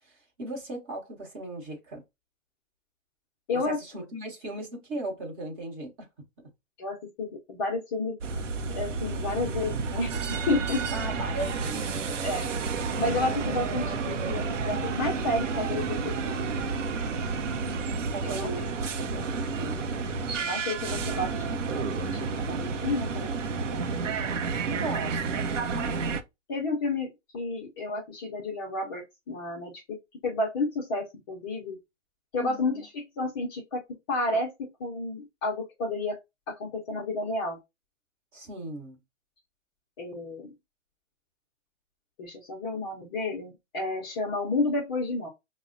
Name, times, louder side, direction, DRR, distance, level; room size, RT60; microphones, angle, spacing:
voice 1, 0.0-2.0 3.5-6.1 10.9-12.2 17.1-19.8 24.7-26.0 32.4-32.9 38.3-39.0, right 2 dB, 25° right, 0.9 m, -38 dB
voice 2, 6.8-8.2 8.7-10.1 10.5-10.9 12.2-12.5 13.0-16.6 18.2-18.5 20.4-21.5 21.7-23.9 26.5-27.1 27.3-30.0 30.2-31.8 32.3-32.9 33.2-33.8 34.1-36.2 36.5-37.6 40.0-40.5 42.2-45.3, left 2 dB, 20° left, 0.5 m, -31 dB
sound 1, 8.2-26.2, right 4 dB, 75° right, 0.7 m, -30 dB
5.4 x 2.1 x 2.5 m
hypercardioid pair, 140°, 38 cm